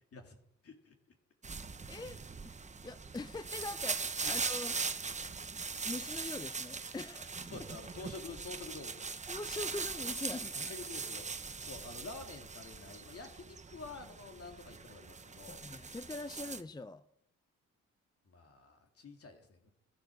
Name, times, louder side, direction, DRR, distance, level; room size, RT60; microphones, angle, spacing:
voice 1, 0.6-0.9 4.2-4.4 5.1-5.2 7.5-9.2 10.7-15.6 18.2-19.7, left 4 dB, 50° left, 2.9 m, -49 dB
sound 1, 1.4-16.6, right 4 dB, 25° right, 0.9 m, -41 dB
voice 2, 1.9-2.5 2.8-4.7 5.8-7.5 9.3-10.7 15.5-17.0, left 2 dB, 15° left, 0.5 m, -43 dB
14.5 x 10.5 x 6.5 m
cardioid pair, 90°, 30 cm